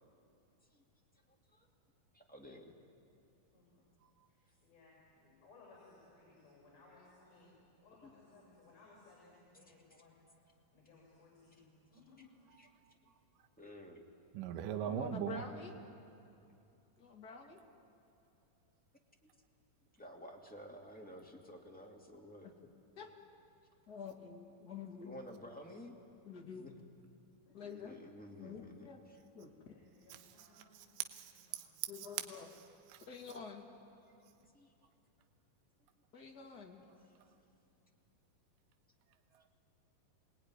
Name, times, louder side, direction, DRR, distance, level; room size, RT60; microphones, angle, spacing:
voice 1, 2.1-2.7 6.9-7.1 12.6-12.7 13.6-14.0 19.2-19.3 20.0-22.5 25.0-25.9 26.5-26.7 27.6-28.8 34.5-34.7 37.1-37.3, equal, 5° left, -1 dB, 1.5 m, -52 dB
voice 2, 3.5-3.8 4.3-7.5 7.8-10.2 10.7-12.3 27.5-27.7 29.7-31.0 31.6-32.0, left 3 dB, 60° left, -3 dB, 8.1 m, -63 dB
voice 3, 12.5-12.9 14.3-15.4 30.1-30.9 31.1-32.3 32.9-33.1 39.3-39.5, right 10 dB, 70° right, 7 dB, 2.5 m, -42 dB
voice 4, 14.9-15.7 17.0-17.6 22.4-22.5 23.0-23.1 23.9-25.1 26.3-26.7 27.5-28.0 28.4-29.0 29.3-29.5 31.9-32.5 33.1-33.7 36.1-36.8, left 5 dB, 30° left, 1 dB, 2.3 m, -48 dB
27.5 x 19.5 x 9.8 m, 2.7 s
omnidirectional pair, 4.2 m